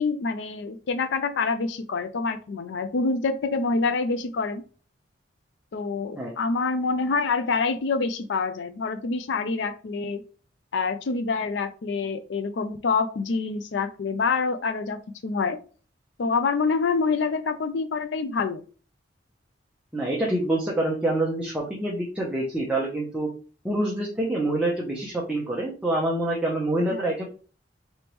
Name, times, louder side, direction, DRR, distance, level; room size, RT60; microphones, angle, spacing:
voice 1, 0.0-4.6 5.7-10.2 10.7-15.6 16.2-18.6 26.9-27.0, left 4 dB, 70° left, 8 dB, 0.4 m, -26 dB
voice 2, 19.9-23.3 23.6-27.2, right 1 dB, 5° right, -4 dB, 0.8 m, -26 dB
4.0 x 3.4 x 3.0 m, 0.38 s
head